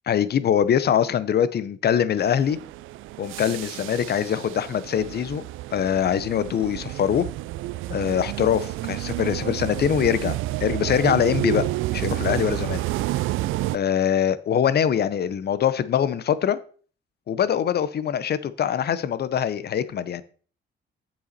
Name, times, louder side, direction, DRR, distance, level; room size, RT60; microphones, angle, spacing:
voice 1, 0.1-2.6 3.2-5.4 5.7-7.2 7.9-11.7 11.9-12.8 13.1-13.2 13.7-16.6 17.3-20.2, left 9 dB, 55° left, 0.8 m, -23 dB
sound 1, 2.2-13.8, right 17 dB, 85° right, 0.4 m, -30 dB
8.0 x 7.2 x 4.2 m
cardioid pair, 90°, 20 cm